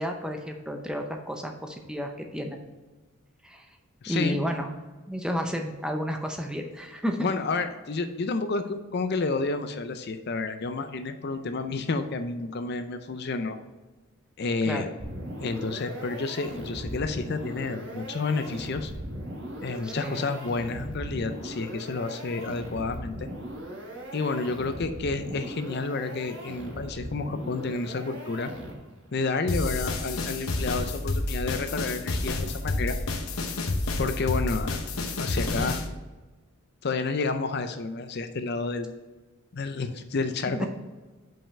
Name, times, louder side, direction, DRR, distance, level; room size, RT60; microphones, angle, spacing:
voice 1, 0.0-2.6 3.4-3.7 4.1-4.7 5.1-7.3 14.7-14.8 19.8-20.2 40.5-40.7, equal, 5° right, 4 dB, 0.6 m, -31 dB
voice 2, 4.0-4.4 7.2-13.6 14.4-14.9 15.4-18.9 19.6-23.3 24.1-28.5 29.1-33.0 34.0-34.8 35.2-35.8 36.8-38.9 39.5-40.6, left 3 dB, 50° left, 8 dB, 0.5 m, -30 dB
sound 1, 15.0-29.1, right 1 dB, 60° right, 1.4 m, -39 dB
sound 2, 29.5-35.9, left 2 dB, 90° left, 0.9 m, -29 dB
5.6 x 5.4 x 5.4 m, 1.2 s
head